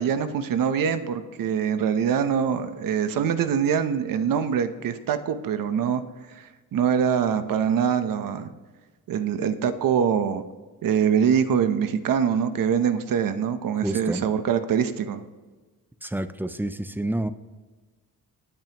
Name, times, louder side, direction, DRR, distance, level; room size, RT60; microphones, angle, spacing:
voice 1, 0.0-6.0 6.3-8.5 9.1-10.4 10.8-15.2, right 7 dB, 80° right, 10 dB, 0.9 m, -24 dB
voice 2, 13.8-14.3 16.0-17.3, right 1 dB, 5° right, 11 dB, 0.4 m, -28 dB
19.0 x 9.1 x 3.0 m, 1.3 s
wide cardioid pair, 175°, 33 cm